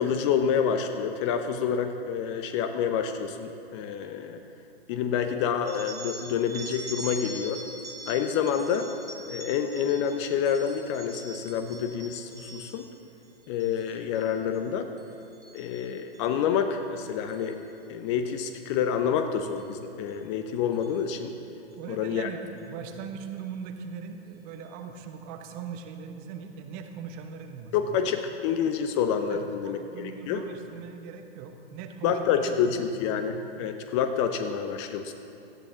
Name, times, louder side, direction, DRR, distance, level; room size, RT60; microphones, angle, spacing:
voice 1, 0.0-4.4 4.9-7.6 8.1-8.9 9.3-12.8 13.5-14.9 15.5-17.6 17.9-21.3 21.9-22.3 27.7-30.4 32.0-35.1, left 7 dB, 30° left, 7 dB, 0.7 m, -28 dB
sound 1, 5.7-13.0 13.4-13.8 14.1-14.6 15.0-16.3 17.3-17.5 18.5-18.6 19.6-19.7 20.1-20.2 20.7-21.0, right 2 dB, 10° right, 1.4 m, -43 dB
voice 2, 21.7-27.9 29.3-32.9, right 6 dB, 30° right, 6 dB, 1.0 m, -40 dB
17.5 x 13.0 x 3.8 m, 2.8 s
figure-of-eight pair, 110°, 31 cm